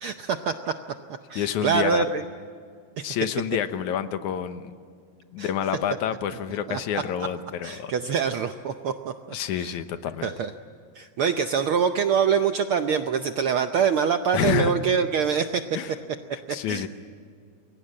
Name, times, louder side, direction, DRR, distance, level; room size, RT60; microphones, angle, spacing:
voice 1, 0.0-0.7 1.3-2.2 3.0-3.1 5.4-5.5 6.7-7.0 7.6-9.1 9.6-9.8 10.2-10.5 10.9-15.8 16.5-16.9, right 7 dB, 75° right, 7 dB, 1.2 m, -25 dB
voice 2, 1.4-2.1 3.0-4.7 5.3-7.9 9.3-10.3 14.3-14.7 15.8-15.9 16.3-16.9, left 9 dB, 85° left, 10 dB, 2.6 m, -28 dB
28.5 x 22.5 x 8.7 m, 2.2 s
omnidirectional pair, 3.3 m